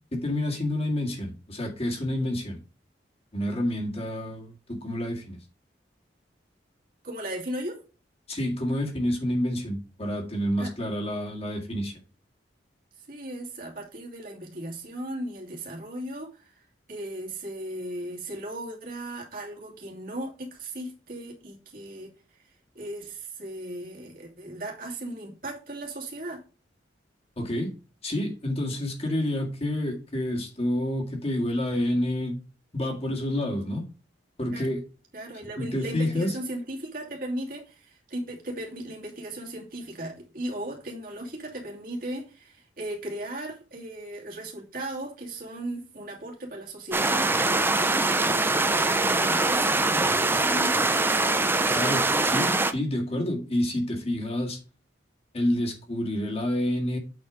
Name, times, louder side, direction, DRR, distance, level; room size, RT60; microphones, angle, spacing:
voice 1, 0.1-2.6 3.3-5.4 8.3-11.9 27.4-27.7 28.0-32.4 32.7-33.8 34.4-34.8 35.6-36.3 51.7-54.6 55.3-57.0, left 1 dB, 35° left, 2.0 m, -28 dB
voice 2, 7.0-7.8 10.6-10.7 13.0-16.6 16.9-26.4 34.5-34.7 35.1-51.5, right 1 dB, 50° right, 2.7 m, -37 dB
sound 1, 46.9-52.7, right 2 dB, 10° right, 0.5 m, -23 dB
8.4 x 4.4 x 4.9 m
head